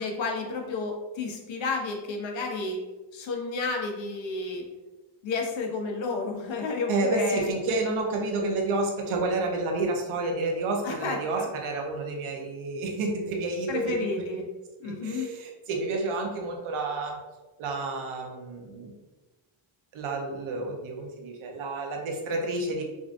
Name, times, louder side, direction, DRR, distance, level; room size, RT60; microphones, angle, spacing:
voice 1, 0.0-2.8 3.1-4.6 5.2-7.5 10.8-11.5 13.7-14.4 14.8-15.3, left 3 dB, 65° left, 1 dB, 0.9 m, -31 dB
voice 2, 6.9-14.2 14.8-17.2 17.6-18.9 19.9-22.8, right 3 dB, 80° right, 1 dB, 0.9 m, -30 dB
5.0 x 2.5 x 2.5 m, 1.2 s
cardioid pair, 115°, 49 cm